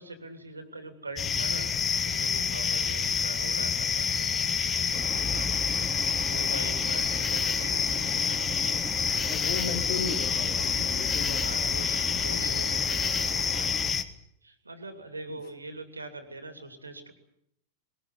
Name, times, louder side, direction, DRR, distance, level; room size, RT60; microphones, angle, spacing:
voice 1, 0.0-1.7 2.0-5.5 6.2-8.6 11.3-13.7 14.4-17.1, right 2 dB, 80° right, 8 dB, 2.9 m, -43 dB
sound 1, 1.2-14.0, left 6 dB, 20° left, 1.5 m, -28 dB
sound 2, 4.9-13.9, right 2 dB, 15° right, 2.3 m, -40 dB
voice 2, 6.4-6.7 9.2-11.7 12.0-12.3 15.3-15.4, left 6 dB, 45° left, 7 dB, 2.8 m, -37 dB
20.5 x 20.0 x 9.6 m, 0.75 s
figure-of-eight pair, 90°, 0 cm